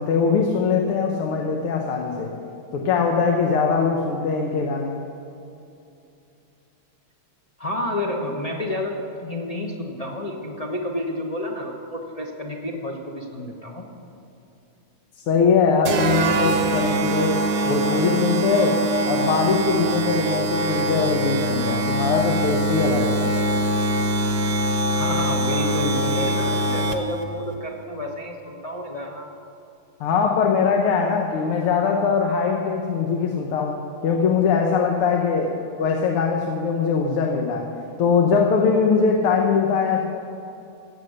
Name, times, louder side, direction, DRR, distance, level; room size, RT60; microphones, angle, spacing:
voice 1, 0.0-2.3 2.7-5.0 15.3-17.4 17.7-23.2 30.0-37.7 38.0-40.1, left 5 dB, 80° left, 1 dB, 1.9 m, -21 dB
voice 2, 7.6-13.8 24.9-29.3, left 1 dB, 35° left, -2 dB, 0.6 m, -30 dB
sound 1, 15.9-27.2, right 1 dB, 55° right, 1.1 m, -23 dB
15.5 x 7.6 x 6.5 m, 2.8 s
omnidirectional pair, 2.4 m